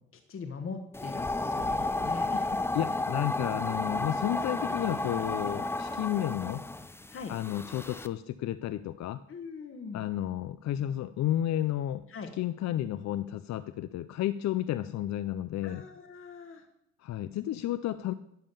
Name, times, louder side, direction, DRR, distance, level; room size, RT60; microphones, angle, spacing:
voice 1, 0.3-2.6 7.1-7.3 9.3-10.0 12.1-12.3 15.6-16.7, left 5 dB, 45° left, 5 dB, 1.2 m, -41 dB
sound 1, 0.9-8.1, left 2 dB, 10° left, 0.5 m, -32 dB
sound 2, 1.4-2.7 3.6-6.2, right 5 dB, 30° right, 0.8 m, -49 dB
voice 2, 2.7-6.6 7.3-9.2 9.9-12.0 12.4-15.8 17.0-18.1, left 12 dB, 65° left, 13 dB, 0.5 m, -32 dB
11.0 x 5.5 x 6.9 m, 0.79 s
cardioid pair, 90°, 30 cm